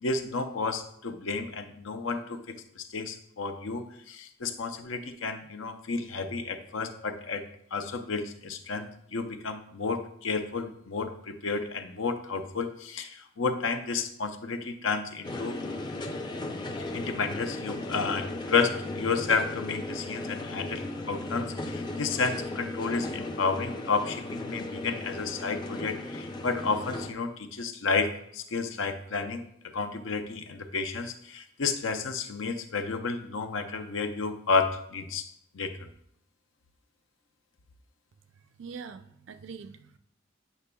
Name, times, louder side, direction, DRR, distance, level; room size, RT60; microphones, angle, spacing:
voice 1, 0.0-7.4 7.7-15.6 16.9-29.5 29.7-35.3 35.5-35.9, left 4 dB, 80° left, 8 dB, 0.6 m, -31 dB
sound 1, 15.2-27.1, left 2 dB, 20° left, 0.5 m, -36 dB
voice 2, 38.6-40.0, right 5 dB, 70° right, 10 dB, 0.4 m, -43 dB
8.2 x 5.8 x 2.3 m, 0.71 s
head